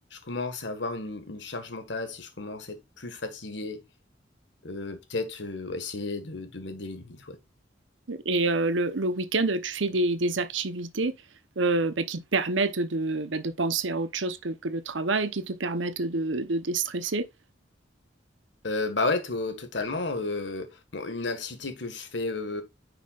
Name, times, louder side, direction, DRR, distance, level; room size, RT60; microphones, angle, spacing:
voice 1, 0.1-3.8 4.6-7.4 18.6-22.6, left 3 dB, 70° left, 1.7 m, -33 dB
voice 2, 8.1-11.1 11.6-17.3, right 3 dB, 80° right, 0.9 m, -27 dB
9.5 x 5.8 x 2.5 m
head